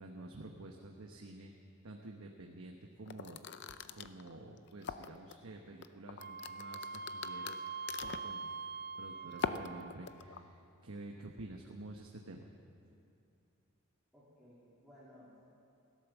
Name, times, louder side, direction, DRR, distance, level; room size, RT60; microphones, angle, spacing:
voice 1, 0.0-1.5 1.8-3.4 3.9-7.7 8.0-12.5, right 2 dB, 80° right, 1 dB, 1.0 m, -50 dB
sound 1, 3.1-5.3 5.8-8.4 9.3-10.4, left 6 dB, 55° left, 0.5 m, -41 dB
Wind instrument woodwind instrument, 6.2-10.1, right 4 dB, 50° right, 0.6 m, -43 dB
voice 2, 14.1-15.4, left 1 dB, ahead, -10 dB, 2.9 m, -59 dB
16.5 x 12.0 x 7.2 m, 2.7 s
head